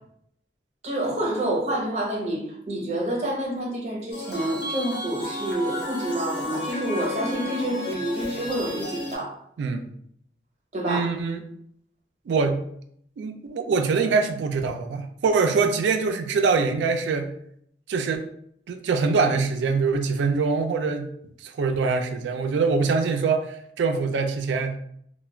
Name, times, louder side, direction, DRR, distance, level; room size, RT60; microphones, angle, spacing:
voice 1, 0.8-9.4 10.7-11.1, right 1 dB, 40° right, -2 dB, 0.7 m, -28 dB
sound 1, 4.1-9.2, left 1 dB, 70° left, 0.8 m, -32 dB
voice 2, 10.9-11.4 12.3-12.6 13.2-17.3 17.9-18.3 18.7-21.1 21.4-24.8, right 4 dB, 80° right, 7 dB, 0.3 m, -24 dB
2.3 x 2.1 x 3.2 m, 0.69 s
head